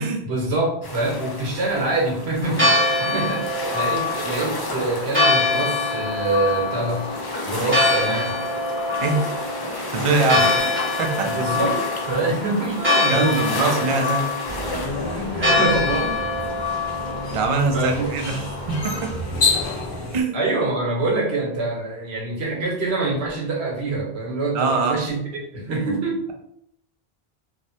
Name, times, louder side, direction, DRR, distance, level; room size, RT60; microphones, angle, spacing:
voice 1, 0.3-7.0 7.4-8.4 10.3-10.5 11.2-11.8 12.1-13.6 15.1-16.3 17.7-18.4 20.3-25.2 25.5-26.2, right 2 dB, 80° right, -1 dB, 1.1 m, -25 dB
sound 1, 0.8-14.9, left 2 dB, 40° left, 0.3 m, -33 dB
Church bell, 2.4-19.1, left 2 dB, 10° right, 0.9 m, -24 dB
voice 2, 9.9-10.5 11.0-11.7 13.1-14.3 17.3-19.1 20.1-20.3 24.5-25.0, right 3 dB, 55° right, 3 dB, 0.4 m, -23 dB
sound 2, 14.4-20.2, left 3 dB, 55° left, 0.8 m, -28 dB
3.2 x 2.0 x 2.7 m, 0.74 s
omnidirectional pair, 1.1 m